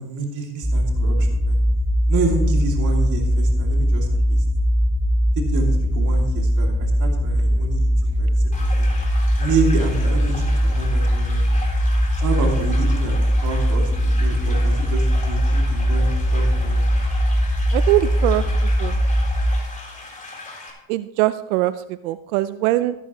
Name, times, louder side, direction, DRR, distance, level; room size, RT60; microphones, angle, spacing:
voice 1, 0.0-1.6 2.1-4.4 5.3-8.3 8.6-8.9 9.4-11.5 12.2-13.9 14.2-16.9, right 4 dB, 45° right, 1 dB, 2.7 m, -28 dB
sound 1, 0.6-19.6, equal, 5° right, 0.9 m, -20 dB
sound 2, 8.5-20.7, left 2 dB, 20° left, 3.8 m, -37 dB
voice 2, 17.7-18.4 18.8-19.0 20.9-22.9, right 16 dB, 85° right, 14 dB, 0.5 m, -21 dB
12.5 x 12.5 x 3.1 m, 0.88 s
supercardioid pair, 85°, 42 cm